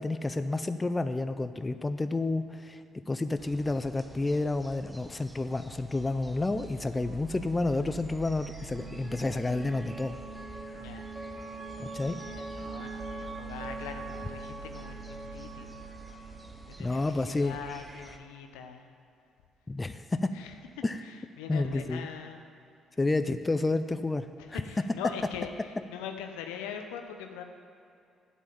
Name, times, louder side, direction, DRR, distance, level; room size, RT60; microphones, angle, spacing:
voice 1, 0.0-2.8 3.1-10.1 11.8-12.2 16.8-17.6 19.7-20.3 20.8-21.0 21.5-22.1 23.0-24.6, left 2 dB, 25° left, 10 dB, 0.6 m, -30 dB
sound 1, 3.4-18.2, right 1 dB, 10° right, 1.1 m, -51 dB
sound 2, 5.4-17.2, right 5 dB, 65° right, 1.4 m, -49 dB
sound 3, 8.3-17.6, right 3 dB, 30° right, 1.7 m, -43 dB
voice 2, 10.7-11.1 12.1-15.8 16.1-18.9 20.3-22.4 24.4-27.4, left 7 dB, 75° left, 6 dB, 0.9 m, -42 dB
8.3 x 7.4 x 8.5 m, 2.6 s
hypercardioid pair, 45°, 0 cm